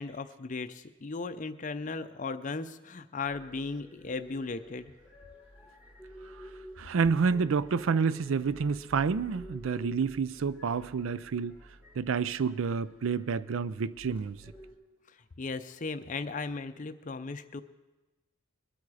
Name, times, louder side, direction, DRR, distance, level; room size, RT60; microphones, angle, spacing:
voice 1, 0.0-4.9 15.1-17.6, left 4 dB, 35° left, 0.5 m, -37 dB
sound 1, 3.2-14.7, right 1 dB, 5° right, 1.5 m, -51 dB
voice 2, 6.8-11.6 12.0-14.4, right 5 dB, 65° right, 0.4 m, -29 dB
21.5 x 8.6 x 4.9 m
head